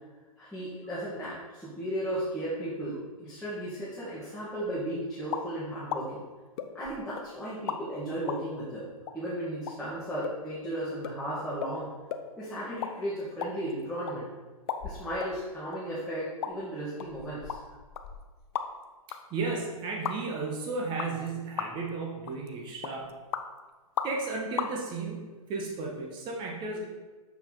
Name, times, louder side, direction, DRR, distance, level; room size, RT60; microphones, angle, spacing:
voice 1, 0.4-6.2 6.7-8.9 9.1-11.9 12.4-14.3 14.8-17.6, right 1 dB, 5° left, -10 dB, 1.7 m, -35 dB
sound 1, 5.3-5.5 5.9-6.0 6.6-7.2 7.7-7.8 8.3-8.4 9.1-9.2 9.7-9.8 10.2-10.4 10.6-10.7 11.0-11.2 11.6-11.7 12.1-12.3 12.6-12.9 13.2-14.2 14.7-15.3 15.7-15.8 16.4-16.5 17.0-18.8 19.1-19.2 20.0-20.2 21.0-21.3 21.6-21.9 22.3-22.5 22.8-23.4 24.0-24.3 24.6-24.7, left 9 dB, 45° left, 0.6 m, -35 dB
voice 2, 19.3-23.1 24.0-26.8, right 3 dB, 25° right, -1 dB, 1.1 m, -34 dB
6.9 x 4.3 x 4.1 m, 1.3 s
figure-of-eight pair, 110°, 19 cm